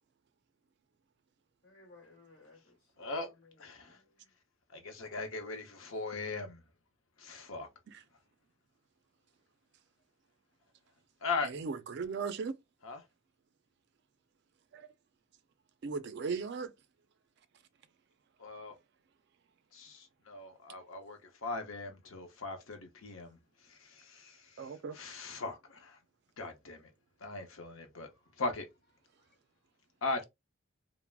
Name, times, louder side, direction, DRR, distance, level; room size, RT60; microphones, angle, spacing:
voice 1, 1.6-3.3 3.8-4.3, left 3 dB, 50° left, 1.3 m, -59 dB
voice 2, 3.0-3.3 3.6-4.0 4.7-6.6 7.2-7.7 11.2-11.5 12.8-13.0 18.4-18.7 19.7-23.4 23.7-24.4 25.0-26.0 26.4-26.9 27.2-28.1 28.4-28.7 30.0-30.2, left 3 dB, 75° left, 0.7 m, -39 dB
voice 3, 11.4-12.6 14.7-14.9 15.8-16.7 24.6-25.0, right 5 dB, 55° right, 0.3 m, -37 dB
3.3 x 2.0 x 2.3 m
head